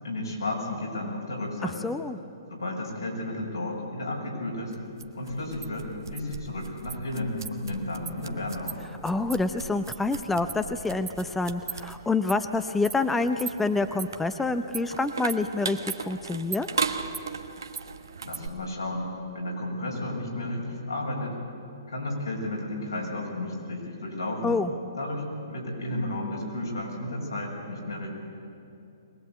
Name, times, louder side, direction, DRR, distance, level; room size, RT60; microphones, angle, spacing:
voice 1, 0.0-1.9 2.5-4.7 5.1-8.8 18.2-19.1 19.3-21.4 21.9-24.6 24.9-28.1, left 1 dB, 85° left, -2 dB, 6.4 m, -33 dB
voice 2, 1.6-2.2 9.0-15.8 16.1-16.7 24.4-24.7, left 3 dB, 5° left, 9 dB, 0.7 m, -27 dB
sound 1, 4.7-18.5, right 5 dB, 70° right, 1.2 m, -37 dB
22.0 x 19.5 x 8.3 m, 2.7 s
figure-of-eight pair, 125°, 2 cm